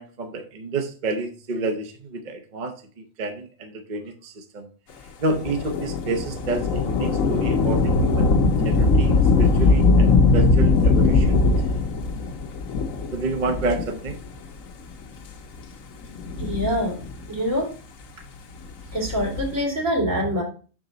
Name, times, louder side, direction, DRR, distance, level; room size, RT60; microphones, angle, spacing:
voice 1, 0.0-2.7 3.2-4.7 5.2-11.4 13.1-14.2, right 3 dB, 40° right, 5 dB, 0.9 m, -29 dB
Thunder / Rain, 5.3-14.3 15.0-15.1 16.0-17.3 18.8-19.6, left 3 dB, 85° left, 1.2 m, -20 dB
voice 2, 16.4-17.0 17.3-17.7 18.9-20.4, equal, 85° right, -3 dB, 2.9 m, -24 dB
6.1 x 5.0 x 3.8 m, 0.38 s
omnidirectional pair, 1.3 m